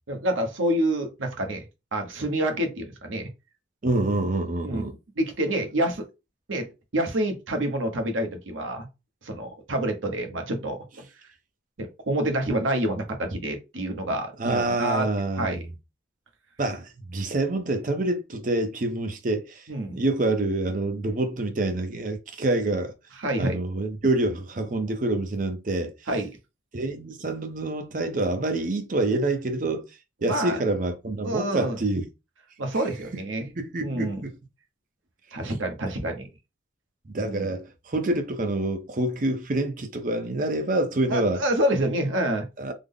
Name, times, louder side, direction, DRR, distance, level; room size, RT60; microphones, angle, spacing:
voice 1, 0.1-1.6 1.9-3.3 4.6-4.8 5.2-6.1 6.5-6.6 6.9-8.9 9.2-10.8 11.8-15.1 15.4-15.7 19.7-20.0 23.2-23.6 26.1-26.3 30.2-30.6 31.2-31.8 32.6-33.5 33.8-34.2 35.3-36.3 37.2-37.5 41.1-42.4, right 1 dB, 85° right, 0.9 m, -27 dB
voice 2, 3.8-4.9 14.4-15.6 16.6-19.6 19.9-22.9 23.4-25.9 26.7-29.8 30.2-32.1 33.4-34.3 37.1-41.4 42.6-42.7, right 2 dB, 45° right, 0.6 m, -27 dB
3.5 x 2.0 x 3.6 m
head